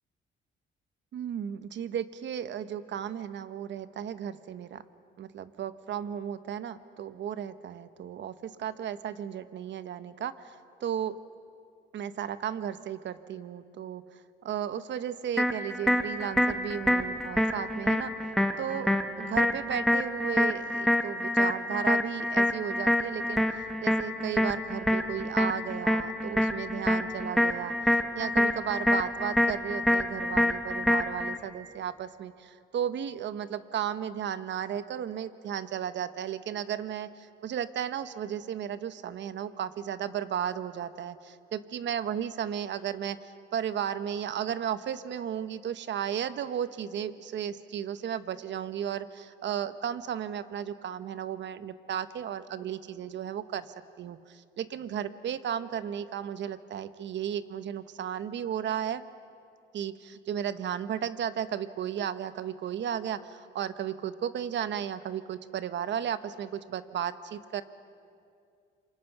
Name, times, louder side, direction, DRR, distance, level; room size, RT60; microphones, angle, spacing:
voice 1, 1.1-4.8 5.2-11.2 11.9-18.1 18.6-18.9 19.2-59.0 59.7-67.6, right 9 dB, 65° right, 13 dB, 1.0 m, -34 dB
sound 1, 15.4-31.4, left 1 dB, ahead, 1.5 m, -27 dB
27.5 x 24.5 x 5.9 m, 2.4 s
cardioid pair, 90°, 20 cm